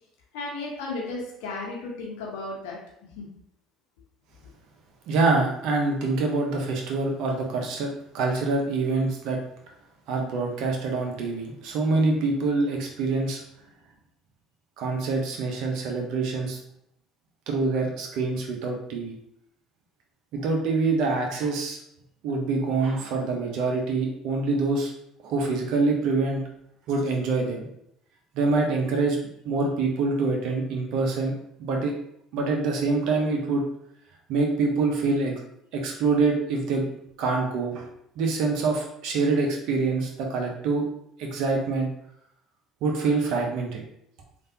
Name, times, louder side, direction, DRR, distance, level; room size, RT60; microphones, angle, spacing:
voice 1, 0.3-2.8 3.1-3.3, left 3 dB, 80° left, -2 dB, 1.0 m, -34 dB
voice 2, 5.1-9.4 10.1-13.4 14.8-16.6 17.5-19.2 20.3-21.8 22.2-24.9 25.2-26.4 26.9-27.7 28.3-29.2 29.4-31.9 32.3-33.6 34.3-35.3 35.7-36.9 37.2-37.8 38.2-40.8 41.2-41.9 42.8-43.8, right 3 dB, 70° right, 1 dB, 0.7 m, -25 dB
3.4 x 2.6 x 2.7 m, 0.75 s
hypercardioid pair, 70°, 0 cm